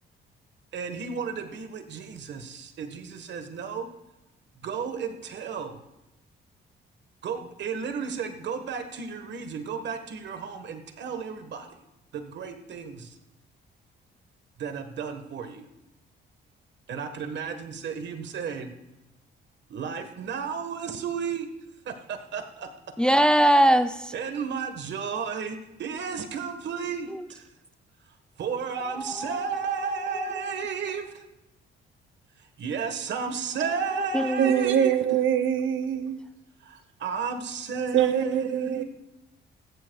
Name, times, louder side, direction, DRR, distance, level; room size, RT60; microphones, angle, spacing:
voice 1, 0.7-3.9 4.6-5.8 7.2-11.7 12.1-13.1 14.6-15.6 16.9-18.7 19.7-21.5 21.9-22.7 24.1-27.1 28.4-31.1 32.6-34.9 36.7-38.8, right 6 dB, 65° right, 1.4 m, -33 dB
voice 2, 23.0-24.1 27.1-27.3 28.8-30.2 33.9-34.7, right 1 dB, 5° left, 0.5 m, -23 dB
voice 3, 34.4-36.2 37.9-38.8, right 9 dB, 80° right, 0.8 m, -24 dB
16.0 x 14.0 x 2.3 m
cardioid pair, 90°, 20 cm